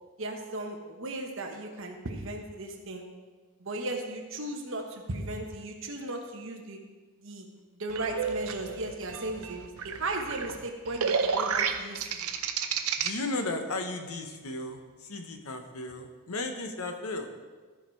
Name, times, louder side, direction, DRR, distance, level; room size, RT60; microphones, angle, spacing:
voice 1, 0.2-3.0 3.6-6.8 7.2-7.5 7.7-12.3, right 2 dB, 60° right, 3 dB, 1.1 m, -36 dB
sound 1, 7.9-13.1, right 6 dB, 80° right, 0.7 m, -31 dB
voice 2, 13.0-17.3, left 2 dB, 80° left, 6 dB, 1.0 m, -35 dB
13.5 x 4.9 x 4.5 m, 1.4 s
head